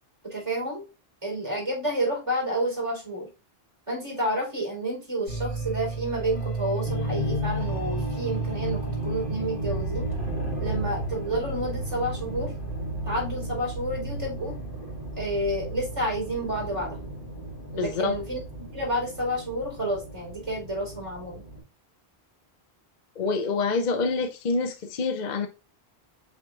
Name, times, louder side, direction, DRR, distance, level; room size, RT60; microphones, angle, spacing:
voice 1, 0.2-0.8 1.2-3.3 3.9-10.1 10.6-12.5 13.0-14.5 15.2-17.0 17.7-18.4 18.7-21.4, right 1 dB, 30° right, 4.1 m, -30 dB
sound 1, 5.3-21.6, right 1 dB, 80° left, 2.3 m, -33 dB
voice 2, 17.8-18.2 23.2-25.5, left 4 dB, 50° left, 0.7 m, -26 dB
8.0 x 5.9 x 2.4 m
omnidirectional pair, 1.1 m